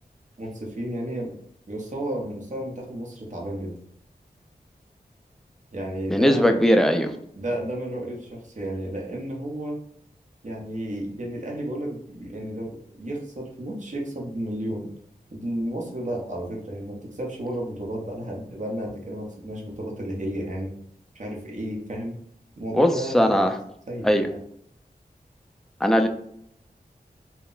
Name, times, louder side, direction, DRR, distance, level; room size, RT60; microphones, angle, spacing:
voice 1, 0.4-1.4 1.7-3.8 5.7-6.6 7.3-9.8 10.4-14.9 15.3-20.7 21.1-22.2 22.6-23.5 23.9-24.4, right 1 dB, 50° right, -1 dB, 0.7 m, -32 dB
voice 2, 6.1-7.1 22.7-23.5 24.0-24.3 25.8-26.1, equal, ahead, 5 dB, 0.3 m, -19 dB
2.1 x 2.0 x 3.7 m, 0.68 s
wide cardioid pair, 60°, 16 cm